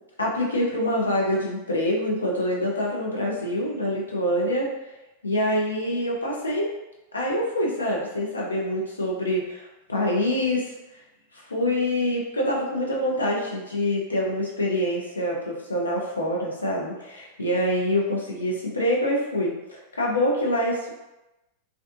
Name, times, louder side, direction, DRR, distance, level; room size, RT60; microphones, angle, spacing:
voice 1, 0.2-4.7 5.2-6.7 7.1-10.7 11.5-20.9, left 1 dB, 75° left, -3 dB, 0.6 m, -25 dB
2.5 x 2.3 x 2.5 m, 0.98 s
figure-of-eight pair, 90°, 0 cm